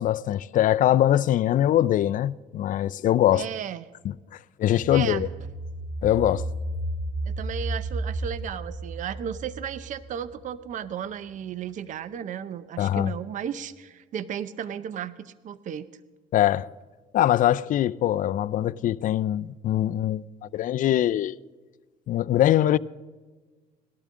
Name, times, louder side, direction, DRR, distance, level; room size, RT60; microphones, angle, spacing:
voice 1, 0.0-3.5 4.0-4.1 4.6-5.3 6.0-6.4 12.8-13.1 16.3-16.7 17.1-20.2 20.5-21.4 22.1-22.8, left 12 dB, 50° left, 0.4 m, -22 dB
voice 2, 3.3-3.8 4.9-5.2 7.3-15.9, right 8 dB, 50° right, 0.6 m, -34 dB
sound 1, 4.8-10.4 10.8-10.9, right 2 dB, 20° right, 1.8 m, -33 dB
19.0 x 12.0 x 3.7 m
cardioid pair, 110°, 17 cm